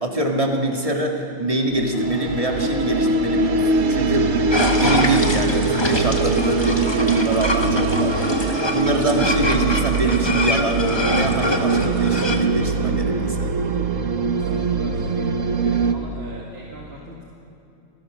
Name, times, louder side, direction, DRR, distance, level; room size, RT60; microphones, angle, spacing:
voice 1, 0.0-3.6 3.9-13.5, right 2 dB, 25° right, 1 dB, 2.1 m, -24 dB
sound 1, 1.7-15.9, right 4 dB, 70° right, 1.4 m, -22 dB
sound 2, 1.9-12.2, left 3 dB, 85° left, 2.8 m, -41 dB
sound 3, 4.5-12.5, left 2 dB, 20° left, 1.2 m, -25 dB
voice 2, 14.3-15.4 15.6-17.2, right 1 dB, 50° right, -3 dB, 2.2 m, -39 dB
26.5 x 18.0 x 6.4 m, 2.7 s
omnidirectional pair, 1.4 m